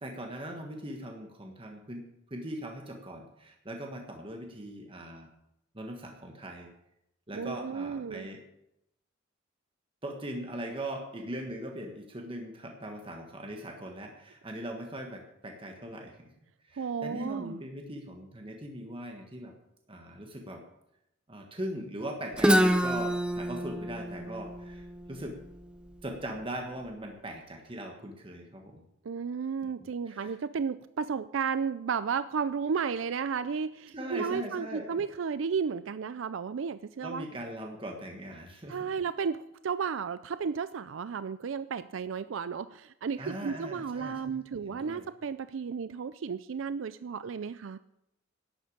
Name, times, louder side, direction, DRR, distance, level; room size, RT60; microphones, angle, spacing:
voice 1, 0.0-2.0 2.3-5.3 5.7-6.7 7.3-8.4 10.0-16.3 16.7-19.5 19.9-20.6 21.3-25.4 26.0-28.8 30.1-30.3 33.9-35.0 37.0-38.8 43.2-45.0, right 1 dB, 30° right, 2 dB, 1.4 m, -40 dB
voice 2, 7.3-8.3 16.8-17.6 29.0-37.2 38.7-47.8, right 6 dB, 75° right, 14 dB, 0.4 m, -33 dB
Guitar, 22.4-26.2, equal, 5° right, 0.8 m, -28 dB
11.5 x 7.9 x 8.7 m, 0.83 s
head